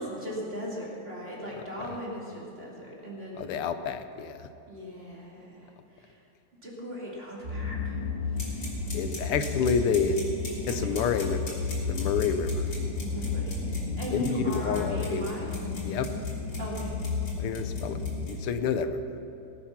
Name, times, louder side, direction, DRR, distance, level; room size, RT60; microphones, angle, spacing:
voice 1, 0.0-3.5 4.7-6.2 6.6-8.0 8.3-8.7 10.6-11.2 13.0-13.7 14.0-15.5 16.6-17.0, equal, 25° right, -4 dB, 2.8 m, -38 dB
voice 2, 3.4-4.5 8.9-10.2 10.7-11.6 11.9-12.7 14.1-15.2 15.8-16.1 17.4-18.0 18.3-19.0, left 6 dB, 85° left, 10 dB, 1.7 m, -29 dB
sound 1, 7.4-18.3, left 4 dB, 45° right, 4.5 m, -32 dB
sound 2, 8.4-18.3, left 2 dB, 50° left, 3.8 m, -42 dB
19.5 x 8.6 x 5.9 m, 2.9 s
omnidirectional pair, 2.4 m